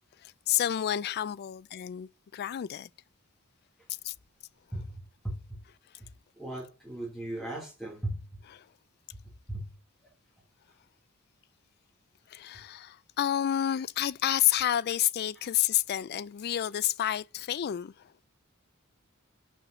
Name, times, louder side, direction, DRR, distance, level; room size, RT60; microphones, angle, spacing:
voice 1, 0.2-2.9 4.0-4.1 8.5-8.6 12.3-17.9, left 11 dB, 45° left, 0.3 m, -29 dB
voice 2, 4.7-5.6 6.0-6.1 6.3-8.4 9.5-9.7, right 1 dB, ahead, 2.9 m, -37 dB
6.3 x 5.4 x 5.7 m
head